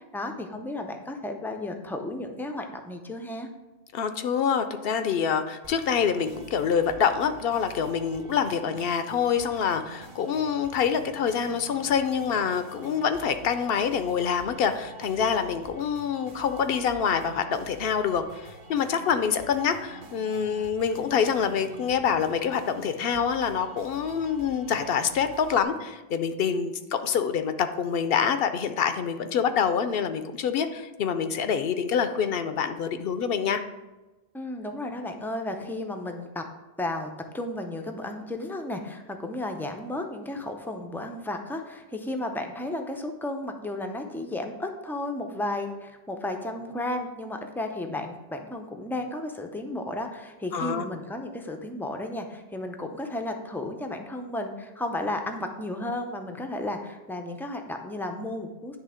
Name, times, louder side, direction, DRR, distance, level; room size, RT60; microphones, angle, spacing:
voice 1, 0.0-3.5 34.3-36.5 36.8-58.8, left 1 dB, 5° left, 4 dB, 0.3 m, -33 dB
voice 2, 3.9-33.6 50.5-50.8, left 7 dB, 70° left, 10 dB, 0.8 m, -26 dB
sound 1, 5.6-25.6, right 3 dB, 55° right, 0.9 m, -47 dB
10.0 x 3.4 x 5.0 m, 1.1 s
omnidirectional pair, 1.1 m